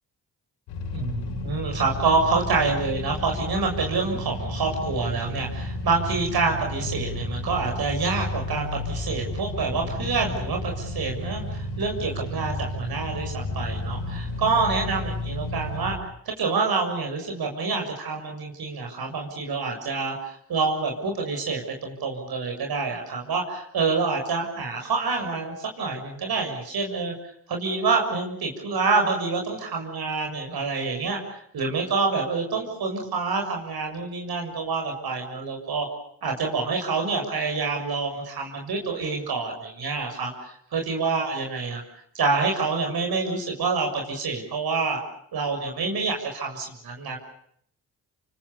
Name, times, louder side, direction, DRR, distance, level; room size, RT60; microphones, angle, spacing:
sound 1, 0.7-15.9, left 2 dB, 90° left, 7.0 m, -32 dB
voice 1, 0.9-27.1 27.5-35.9 36.2-41.8 42.1-45.0 45.3-47.2, right 4 dB, 65° right, 2 dB, 7.0 m, -27 dB
28.5 x 24.5 x 7.0 m, 0.67 s
supercardioid pair, 55°, 40 cm